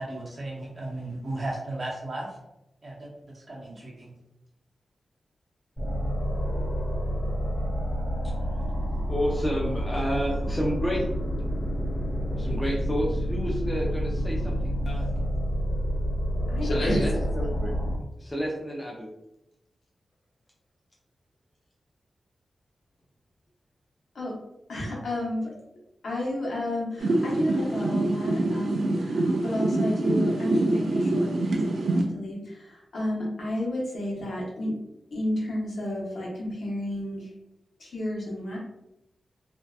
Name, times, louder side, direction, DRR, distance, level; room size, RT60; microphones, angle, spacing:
voice 1, 0.0-2.3 2.8-3.1 3.3-4.1, right 2 dB, 35° right, -3 dB, 0.6 m, -35 dB
sound 1, 5.8-17.9, equal, 20° left, 1.3 m, -28 dB
voice 2, 9.1-11.0 12.4-14.8 16.9-17.7 18.2-19.1, equal, 5° left, -4 dB, 0.4 m, -30 dB
voice 3, 16.5-17.2 24.1-24.3 24.7-25.5 26.0-34.7 35.1-37.3 37.8-38.6, left 1 dB, 70° left, -4 dB, 0.8 m, -31 dB
sound 2, 27.0-32.0, right 2 dB, 80° right, 0.3 m, -25 dB
2.6 x 2.2 x 2.3 m, 0.87 s
wide cardioid pair, 170°, 0 cm